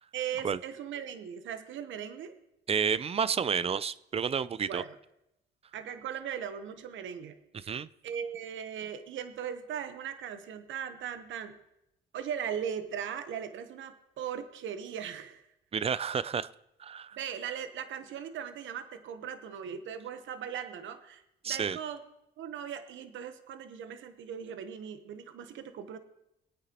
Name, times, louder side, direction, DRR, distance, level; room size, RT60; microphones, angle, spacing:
voice 1, 0.1-2.3 4.7-4.9 5.7-7.4 8.0-11.6 12.1-15.4 17.2-22.0 22.4-26.0, right 8 dB, 75° right, 10 dB, 1.0 m, -38 dB
voice 2, 2.7-4.8 7.5-7.9 15.7-16.5 16.8-17.2 21.4-21.8, right 7 dB, 30° right, 18 dB, 0.4 m, -30 dB
21.5 x 9.0 x 2.9 m, 0.84 s
cardioid pair, 90°, 20 cm